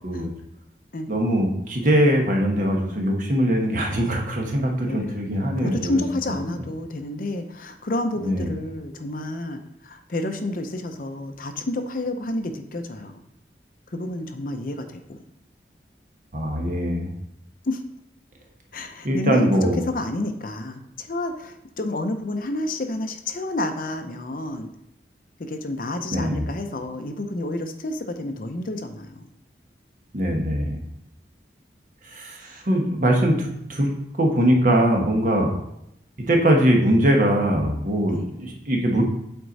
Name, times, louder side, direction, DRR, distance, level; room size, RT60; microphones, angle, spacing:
voice 1, 1.1-6.0 6.3-6.4 8.2-8.5 16.3-17.1 19.0-19.8 26.1-26.5 30.1-30.8 32.1-33.9 34.2-35.5 36.3-39.0, equal, 45° right, 1 dB, 1.2 m, -21 dB
voice 2, 4.9-5.3 5.5-13.1 13.9-15.2 17.7-17.8 18.7-19.5 19.9-24.7 25.4-29.2 38.1-38.3, left 2 dB, 50° left, 7 dB, 0.6 m, -29 dB
7.9 x 4.5 x 4.0 m, 0.81 s
head